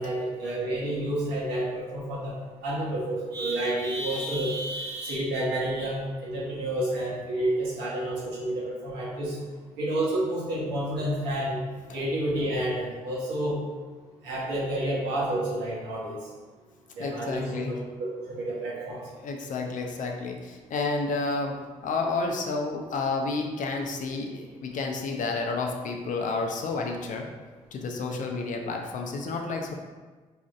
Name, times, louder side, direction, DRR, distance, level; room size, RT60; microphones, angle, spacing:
voice 1, 0.0-2.4 2.6-9.4 9.8-11.6 11.9-13.6 14.2-16.2 16.9-19.0, right 1 dB, 80° right, -6 dB, 1.1 m, -29 dB
voice 2, 17.0-17.8 19.2-21.5 21.8-27.3 27.7-29.7, left 3 dB, 50° left, 2 dB, 0.5 m, -30 dB
4.8 x 2.5 x 2.4 m, 1.3 s
hypercardioid pair, 45°, 17 cm